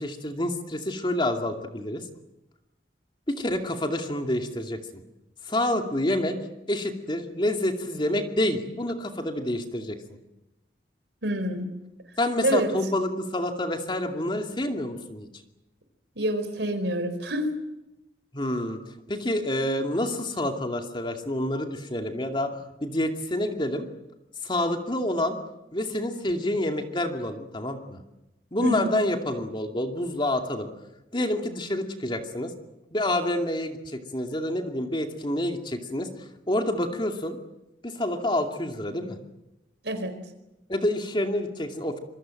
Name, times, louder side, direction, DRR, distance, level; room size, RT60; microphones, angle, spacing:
voice 1, 0.0-2.0 3.4-4.8 5.5-6.4 6.7-10.2 12.2-15.3 18.3-18.8 19.1-22.5 22.8-23.9 24.4-25.4 25.7-28.0 28.5-30.7 31.1-32.5 32.9-36.1 36.5-37.4 37.8-39.2 40.7-42.0, left 1 dB, 25° left, 4 dB, 2.5 m, -28 dB
voice 2, 11.2-11.7 12.4-12.7 16.2-17.5 28.6-28.9 39.8-40.1, right 1 dB, 85° right, 9 dB, 4.4 m, -27 dB
26.5 x 23.5 x 7.8 m, 0.94 s
head